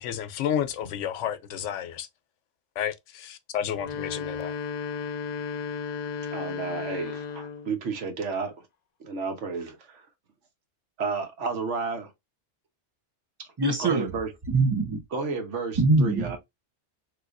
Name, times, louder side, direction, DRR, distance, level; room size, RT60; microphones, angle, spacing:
voice 1, 0.0-2.1 2.8-4.5, left 9 dB, 85° left, 0.9 m, -31 dB
sound 1, 3.7-7.8, left 6 dB, 50° left, 0.5 m, -34 dB
voice 2, 6.3-8.6 9.0-10.1 11.0-12.1 13.8-14.3 15.1-16.4, right 4 dB, 80° right, 1.3 m, -32 dB
voice 3, 13.6-14.1 14.5-15.0 15.8-16.4, right 3 dB, 35° right, 0.4 m, -23 dB
3.3 x 2.9 x 2.4 m
omnidirectional pair, 1.2 m